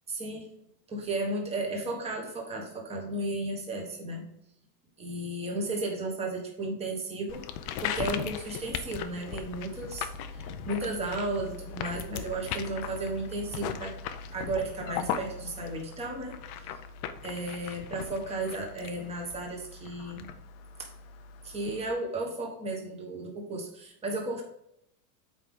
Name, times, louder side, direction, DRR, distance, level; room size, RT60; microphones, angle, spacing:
voice 1, 0.1-0.5 0.9-4.2 5.0-7.4 7.8-13.9 14.3-16.4 17.2-20.3 21.4-24.4, right 2 dB, 15° right, 1 dB, 1.4 m, -34 dB
sound 1, 7.3-21.9, left 8 dB, 35° left, 0.4 m, -38 dB
8.1 x 5.0 x 3.7 m, 0.76 s
supercardioid pair, 165°, 45 cm